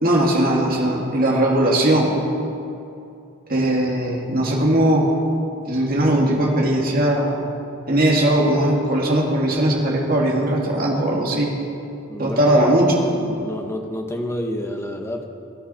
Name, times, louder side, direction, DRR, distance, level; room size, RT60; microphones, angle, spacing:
voice 1, 0.0-2.1 3.5-5.1 5.7-7.3 7.9-11.5 12.2-13.0, right 1 dB, 40° right, -2 dB, 2.2 m, -19 dB
voice 2, 12.1-15.2, equal, 10° left, 4 dB, 0.9 m, -29 dB
22.5 x 10.0 x 4.3 m, 2.7 s
head